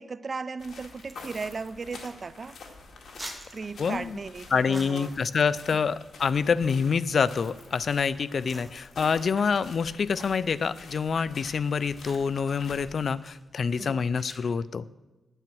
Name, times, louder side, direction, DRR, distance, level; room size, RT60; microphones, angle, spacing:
voice 1, 0.0-2.6 3.5-5.1 13.8-14.0, right 4 dB, 40° right, 16 dB, 0.4 m, -36 dB
sound 1, 0.6-13.2, left 4 dB, 75° left, 2.0 m, -48 dB
sound 2, 1.0-14.4, right 1 dB, 15° right, 1.9 m, -51 dB
voice 2, 3.8-4.2 4.5-14.9, left 6 dB, 60° left, 16 dB, 0.5 m, -26 dB
10.0 x 9.0 x 7.7 m, 1.1 s
wide cardioid pair, 110°, 0 cm